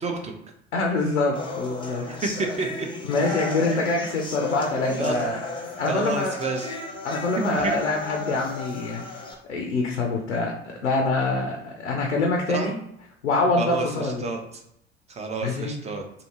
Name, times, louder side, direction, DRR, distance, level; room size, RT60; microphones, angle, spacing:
voice 1, 0.0-0.3 2.1-2.9 3.7-3.9 5.0-5.2 5.9-6.8 7.5-7.8 12.5-12.7 13.6-14.4 15.1-16.0, right 3 dB, 20° right, 3 dB, 0.6 m, -29 dB
voice 2, 0.7-2.1 3.0-5.4 5.8-6.3 7.0-9.0 9.5-10.6 10.8-12.8 13.2-14.3 15.4-15.8, left 2 dB, 85° left, 1 dB, 0.5 m, -25 dB
sound 1, 1.3-9.3, left 3 dB, 15° left, 0.8 m, -34 dB
2.7 x 2.6 x 2.8 m, 0.77 s
figure-of-eight pair, 65°, 35 cm